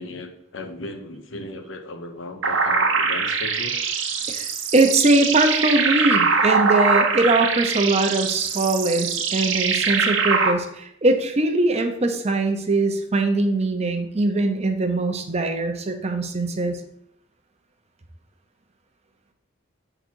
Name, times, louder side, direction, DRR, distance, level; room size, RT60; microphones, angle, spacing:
voice 1, 0.0-3.8, left 2 dB, 80° left, 5 dB, 0.8 m, -36 dB
sound 1, 2.4-10.5, right 5 dB, 75° right, 0.8 m, -22 dB
voice 2, 4.3-16.8, right 2 dB, 35° right, 6 dB, 0.7 m, -21 dB
7.3 x 3.9 x 4.5 m, 0.77 s
head